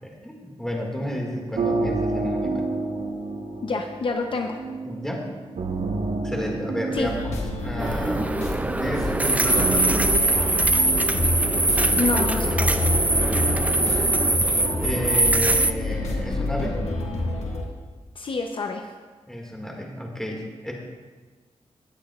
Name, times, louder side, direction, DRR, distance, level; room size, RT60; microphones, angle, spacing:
voice 1, 0.0-2.6 4.8-5.3 6.2-10.0 13.0-13.9 14.8-16.8 19.3-20.7, equal, 5° left, -1 dB, 2.0 m, -32 dB
sound 1, 1.1-12.3, right 3 dB, 80° right, 1.0 m, -31 dB
voice 2, 3.6-4.6 6.9-7.1 12.0-12.7 18.1-18.9, left 3 dB, 50° left, 3 dB, 0.7 m, -27 dB
sound 2, 7.0-17.6, left 2 dB, 85° left, 1.5 m, -28 dB
sound 3, 7.8-15.7, right 2 dB, 15° right, 0.3 m, -22 dB
17.5 x 8.6 x 2.4 m, 1.3 s
wide cardioid pair, 120°, 11 cm